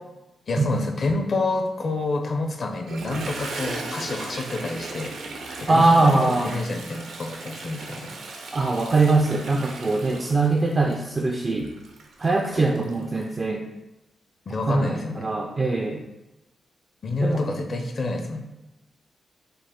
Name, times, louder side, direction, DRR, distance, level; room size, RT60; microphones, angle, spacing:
voice 1, 0.5-5.2 5.6-8.1 14.5-15.3 17.0-18.4, left 2 dB, 45° left, 4 dB, 0.5 m, -28 dB
Toilet flush, 2.7-13.3, right 3 dB, 75° right, 0.7 m, -37 dB
voice 2, 5.7-6.5 8.5-11.7 12.2-13.7 14.7-16.0 17.2-17.8, right 3 dB, 30° right, 2 dB, 0.3 m, -22 dB
5.1 x 2.5 x 3.7 m, 0.99 s
wide cardioid pair, 145°, 0 cm